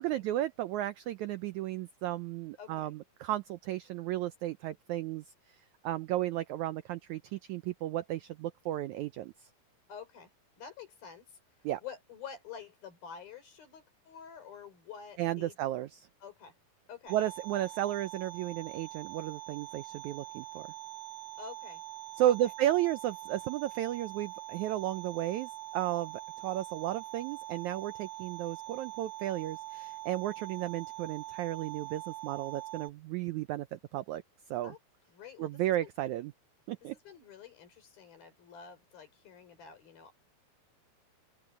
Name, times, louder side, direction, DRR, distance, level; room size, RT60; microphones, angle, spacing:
voice 1, 0.0-5.2 5.8-9.3 11.6-11.8 15.2-16.1 17.1-20.7 22.2-34.2 34.5-34.7 35.4-36.3 36.7-36.9, right 13 dB, 85° right, 1.7 m, -33 dB
voice 2, 2.6-2.9 9.9-10.3 10.6-11.4 11.8-15.6 16.2-16.5 16.9-17.2 21.4-21.8 22.3-22.5 34.6-34.8 35.1-35.6 36.8-40.1, left 7 dB, 90° left, 6.7 m, -48 dB
sound 1, 17.1-32.9, right 14 dB, 35° right, 1.7 m, -44 dB
open air
omnidirectional pair, 4.1 m